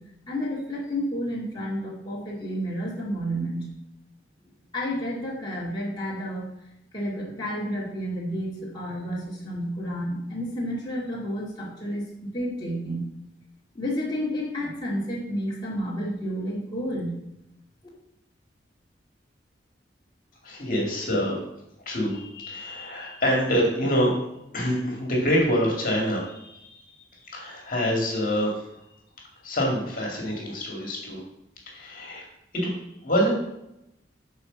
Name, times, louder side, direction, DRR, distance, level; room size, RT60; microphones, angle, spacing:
voice 1, 0.3-3.7 4.7-6.5 6.9-12.0 12.3-13.1 13.8-17.1, equal, 25° left, -7 dB, 2.1 m, -30 dB
voice 2, 20.4-21.4 21.9-24.2 24.5-26.8 27.2-28.6 29.4-31.2 31.7-32.3 32.6-32.7 33.0-33.3, equal, 50° left, -2 dB, 2.2 m, -26 dB
8.3 x 4.4 x 6.2 m, 0.85 s
head